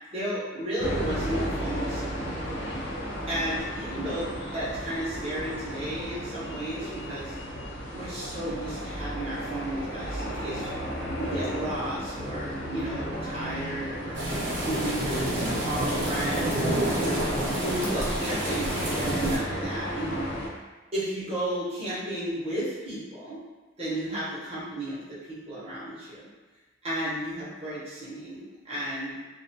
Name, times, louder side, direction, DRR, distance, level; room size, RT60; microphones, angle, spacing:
voice 1, 0.1-2.5 3.3-7.4 7.9-10.7 11.2-14.2 14.6-17.2 17.6-20.3 20.9-23.4 23.8-26.3 26.8-29.2, right 1 dB, 30° right, -10 dB, 0.8 m, -33 dB
sound 1, 0.8-20.5, equal, 55° left, 0.5 m, -34 dB
sound 2, 14.1-19.4, right 1 dB, 60° right, 0.7 m, -28 dB
2.3 x 2.2 x 2.7 m, 1.3 s
head